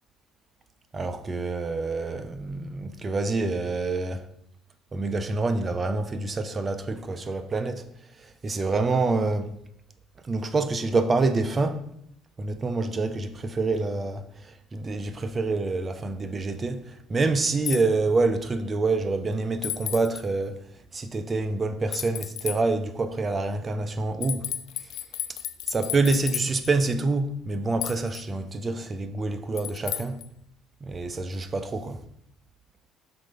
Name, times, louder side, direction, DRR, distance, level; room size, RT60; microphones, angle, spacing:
voice 1, 0.9-4.3 4.9-7.9 8.2-9.5 10.2-11.9 12.4-20.6 20.9-24.5 25.3-25.4 25.7-30.2 30.8-32.0, right 3 dB, 30° right, 0.6 m, -27 dB
sound 1, 17.7-17.8 19.6-20.2 21.9-22.6 24.2-26.7 27.8-28.2 29.6-30.3, left 13 dB, 75° left, 0.5 m, -33 dB
5.9 x 4.6 x 5.2 m
cardioid pair, 100°, 0 cm